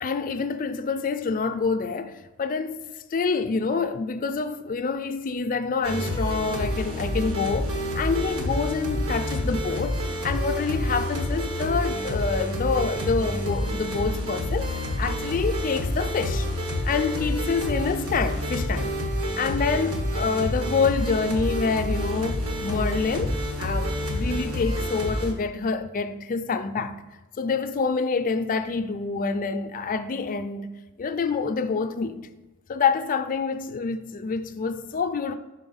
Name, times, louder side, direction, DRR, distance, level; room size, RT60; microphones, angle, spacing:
voice 1, 0.0-2.8 3.1-10.0 10.2-16.5 16.8-18.9 19.3-27.0 27.4-30.7 31.0-32.2 32.7-35.3, left 4 dB, 40° left, 0.4 m, -27 dB
sound 1, 5.8-25.3, equal, 75° right, 1.3 m, -28 dB
5.5 x 4.3 x 5.5 m
head